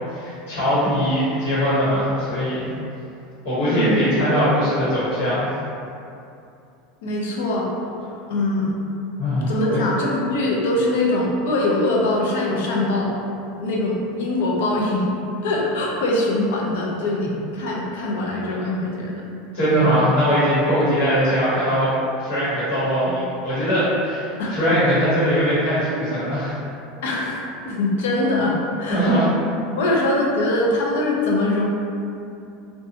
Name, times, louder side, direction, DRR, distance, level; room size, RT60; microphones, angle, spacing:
voice 1, 0.1-2.7 3.4-5.5 9.2-9.8 19.5-21.9 22.2-26.6 28.9-29.3, equal, 70° left, -11 dB, 1.1 m, -21 dB
voice 2, 3.7-4.0 7.0-7.7 8.3-8.7 9.4-13.2 13.6-15.1 15.4-19.2 19.8-19.9 24.4-24.6 27.0-29.1 29.8-31.6, left 2 dB, 90° left, -2 dB, 0.5 m, -22 dB
2.7 x 2.2 x 2.8 m, 2.6 s
supercardioid pair, 170°, 0 cm